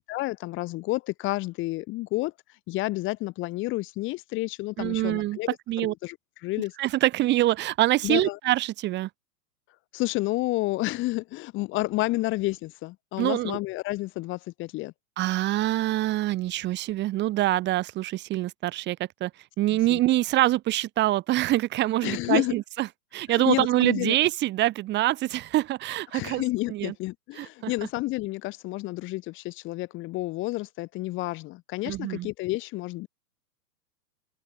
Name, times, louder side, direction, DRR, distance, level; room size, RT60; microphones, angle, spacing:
voice 1, 0.0-5.5 5.8-6.2 6.4-6.7 8.0-8.4 9.9-14.9 19.7-20.0 22.0-22.6 23.3-24.2 26.1-33.1, left 19 dB, 25° left, 5.0 m, -30 dB
voice 2, 4.8-5.4 5.7-5.9 6.8-9.1 13.2-13.6 15.2-19.3 19.6-22.9 23.1-26.4 26.7-26.9 27.4-27.7 31.9-32.3, right 16 dB, 20° right, 5.7 m, -25 dB
open air
hypercardioid pair, 165°, 49 cm